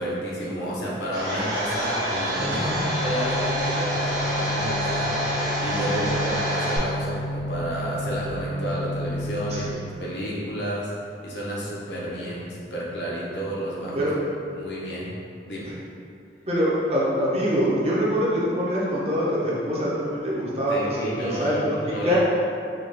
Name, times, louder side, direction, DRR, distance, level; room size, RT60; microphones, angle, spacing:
voice 1, 0.0-2.7 3.0-10.9 11.2-14.1 14.5-15.1 15.4-15.7 20.7-21.6 21.9-22.2, equal, 80° left, -5 dB, 0.8 m, -31 dB
Domestic sounds home sounds, 1.1-6.8, equal, 75° right, 1.4 m, -27 dB
sound 1, 2.4-9.7, equal, 40° left, 0.3 m, -31 dB
voice 2, 2.5-2.9 5.8-6.0 9.5-9.6 13.9-14.2 16.5-21.8 22.0-22.2, equal, 35° right, -6 dB, 0.7 m, -24 dB
3.8 x 2.4 x 3.3 m, 2.5 s
head